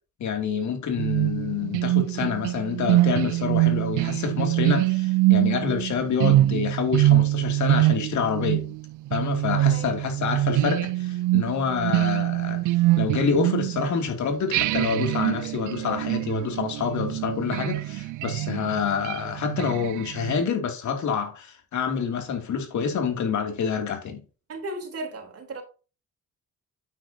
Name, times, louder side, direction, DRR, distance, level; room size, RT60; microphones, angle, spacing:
voice 1, 0.2-8.7 9.1-24.2, left 6 dB, 70° left, 2.8 m, -27 dB
sound 1, 1.0-14.1 14.5-20.4, right 16 dB, 80° right, 0.5 m, -24 dB
voice 2, 9.4-9.9 24.5-25.6, right 2 dB, 50° right, 3.5 m, -35 dB
9.0 x 7.8 x 2.8 m
cardioid pair, 90°, 30 cm